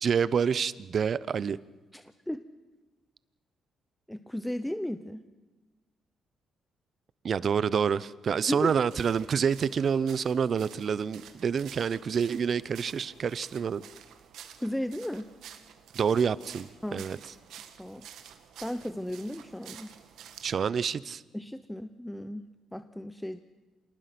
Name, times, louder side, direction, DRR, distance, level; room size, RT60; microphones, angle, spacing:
voice 1, 0.0-1.6 7.2-13.8 15.9-17.2 20.4-21.2, right 7 dB, 50° right, 0.7 m, -28 dB
voice 2, 1.9-2.4 4.1-5.2 8.5-8.7 14.6-15.3 16.8-17.2 17.8-18.0 18.6-19.9 21.3-23.4, left 1 dB, 5° left, 0.8 m, -35 dB
sound 1, 8.6-20.6, right 9 dB, 80° right, 1.7 m, -50 dB
27.0 x 19.0 x 6.0 m
cardioid pair, 90°, 0 cm